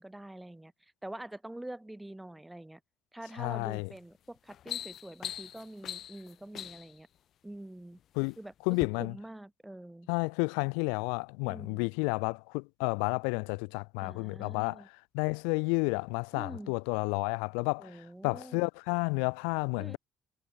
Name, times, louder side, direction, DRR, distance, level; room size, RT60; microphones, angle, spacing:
voice 1, 0.0-2.8 3.1-7.1 7.4-8.0 8.4-10.1 11.4-11.9 14.0-14.9 16.3-16.7 17.8-18.7 19.8-20.0, right 1 dB, 10° right, 1.9 m, -46 dB
voice 2, 3.4-3.9 8.2-8.3 8.7-9.1 10.1-14.8 15.1-17.9 18.2-20.0, left 40 dB or more, 70° left, 0.7 m, -31 dB
sound 1, 3.7-4.0 4.4-7.0 7.8-8.3 8.7-8.9, left 10 dB, 55° left, 1.2 m, -41 dB
figure-of-eight pair, 45°, 0 cm